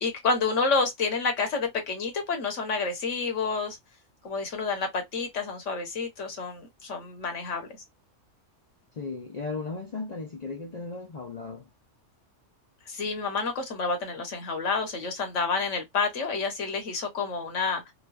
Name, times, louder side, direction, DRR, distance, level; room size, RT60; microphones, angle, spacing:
voice 1, 0.0-3.8 4.2-7.7 12.9-17.9, left 4 dB, 80° left, 1.3 m, -29 dB
voice 2, 8.9-11.7, left 4 dB, 45° left, 0.6 m, -36 dB
3.1 x 2.1 x 2.3 m
omnidirectional pair, 1.3 m